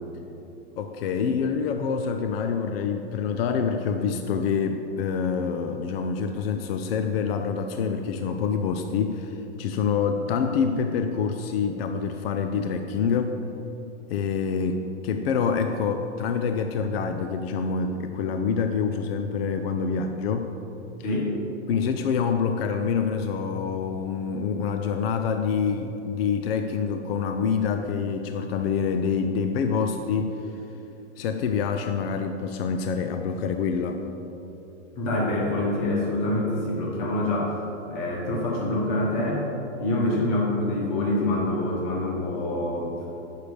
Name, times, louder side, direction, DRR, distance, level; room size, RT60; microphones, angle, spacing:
voice 1, 0.8-13.4 14.1-20.5 21.7-30.3 31.2-34.0, left 6 dB, 55° left, 6 dB, 0.5 m, -26 dB
voice 2, 35.0-37.6 37.9-39.5 39.8-43.1, left 1 dB, 40° left, -3 dB, 1.8 m, -26 dB
8.3 x 6.6 x 5.0 m, 3.0 s
supercardioid pair, 155°, 36 cm